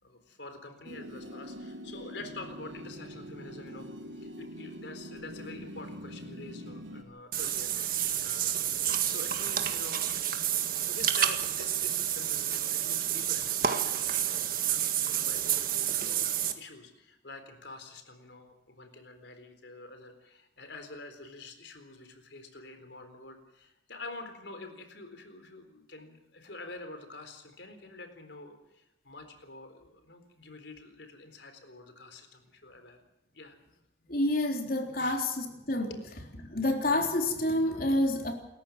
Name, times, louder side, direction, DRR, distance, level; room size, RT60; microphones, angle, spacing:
voice 1, 0.0-7.7 8.2-8.6 9.0-10.1 10.8-33.0 33.3-33.6 35.0-35.2 35.8-36.0, left 2 dB, 65° left, 7 dB, 4.0 m, -47 dB
sound 1, 0.8-7.0, equal, 75° right, 3.8 m, -44 dB
Water / Bathtub (filling or washing), 7.3-16.5, right 10 dB, 45° right, 1.8 m, -29 dB
voice 2, 34.1-35.9 36.5-38.3, left 1 dB, 50° left, 3 dB, 3.8 m, -28 dB
28.5 x 14.5 x 7.5 m, 0.90 s
head